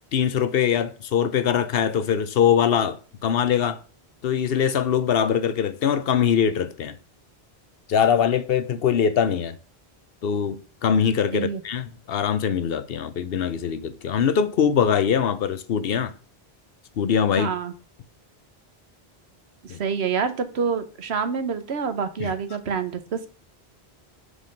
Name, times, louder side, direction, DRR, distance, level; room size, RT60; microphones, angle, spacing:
voice 1, 0.1-3.8 4.2-7.0 7.9-9.6 10.2-16.1 17.0-17.5 19.7-19.8 22.2-22.3, left 8 dB, 70° left, 0.9 m, -22 dB
voice 2, 17.4-17.7 19.6-23.3, right 6 dB, 85° right, 1.2 m, -27 dB
5.6 x 5.0 x 5.2 m
omnidirectional pair, 1.1 m